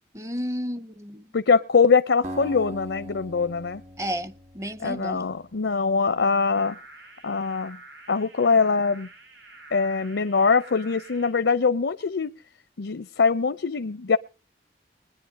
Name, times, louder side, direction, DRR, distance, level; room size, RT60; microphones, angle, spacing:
voice 1, 0.1-1.3 4.0-5.3, equal, 15° right, 0.7 m, -32 dB
voice 2, 1.3-3.8 4.8-6.8 7.2-7.8 8.1-9.1 9.7-12.3 12.8-14.2, left 5 dB, 85° left, 0.6 m, -22 dB
Acoustic guitar, 2.2-5.4, equal, 40° right, 1.4 m, -40 dB
sound 1, 6.5-11.3, right 2 dB, 85° right, 4.9 m, -47 dB
21.0 x 10.0 x 3.6 m
head